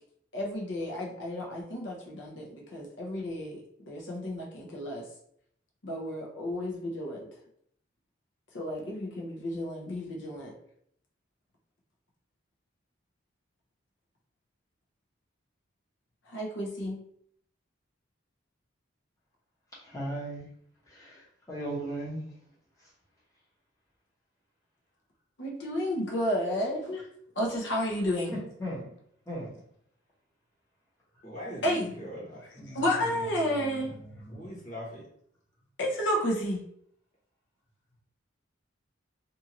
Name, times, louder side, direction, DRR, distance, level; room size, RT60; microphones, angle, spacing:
voice 1, 0.3-3.6 3.9-5.0 5.8-7.3 8.5-10.5 16.3-17.0 25.4-27.1 27.4-28.3 31.6-31.9 32.7-33.9 35.8-36.6, equal, 65° left, -2 dB, 0.7 m, -31 dB
voice 2, 19.9-20.4 20.9-21.2 21.5-22.2 28.6-28.9 29.3-29.5 32.6-32.9 33.2-34.5, right 1 dB, 15° left, -6 dB, 0.9 m, -37 dB
voice 3, 31.2-32.4 34.3-35.1, equal, 40° left, -6 dB, 1.2 m, -41 dB
2.7 x 2.4 x 2.8 m, 0.68 s
head